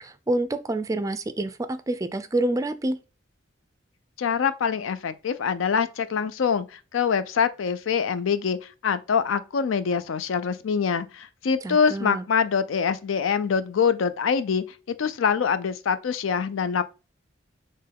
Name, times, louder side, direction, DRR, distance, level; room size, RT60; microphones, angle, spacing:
voice 1, 0.0-3.0 11.6-12.2, right 1 dB, 15° right, 0.3 m, -27 dB
voice 2, 4.2-6.7 6.9-8.6 8.8-14.6 15.0-16.8, left 6 dB, 90° left, 0.4 m, -24 dB
4.5 x 3.1 x 3.4 m
head